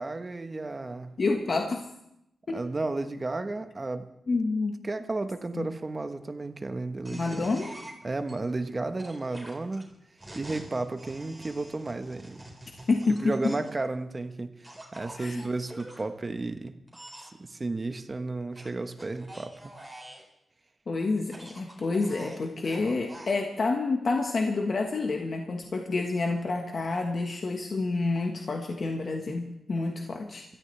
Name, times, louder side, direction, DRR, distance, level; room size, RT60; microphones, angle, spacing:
voice 1, 0.0-1.1 2.5-4.1 4.8-7.5 8.0-9.9 10.3-12.4 13.2-14.5 14.9-16.7 17.4-19.7, right 2 dB, 30° right, 9 dB, 1.1 m, -33 dB
voice 2, 1.2-1.8 2.5-2.6 4.3-4.8 5.5-5.7 7.1-7.7 12.9-13.5 15.2-15.4 20.9-30.4, left 3 dB, 55° left, 2 dB, 1.4 m, -28 dB
sound 1, 7.0-8.3 9.0-13.8 14.6-16.0 16.9-17.3 18.6-20.3 21.2-23.4, right 1 dB, 10° right, 4.6 m, -46 dB
28.0 x 13.5 x 3.4 m, 0.80 s
cardioid pair, 80°, 0 cm